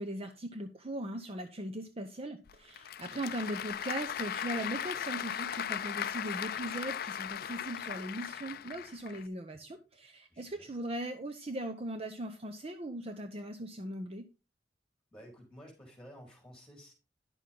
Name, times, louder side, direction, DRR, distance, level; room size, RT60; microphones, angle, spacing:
voice 1, 0.0-14.3, right 1 dB, 35° right, 7 dB, 0.7 m, -39 dB
Applause / Crowd, 2.5-9.2, left 9 dB, 55° left, 0.4 m, -38 dB
voice 2, 10.3-10.7 15.1-16.9, equal, 5° left, 0 dB, 4.2 m, -53 dB
10.5 x 6.5 x 3.7 m, 0.29 s
head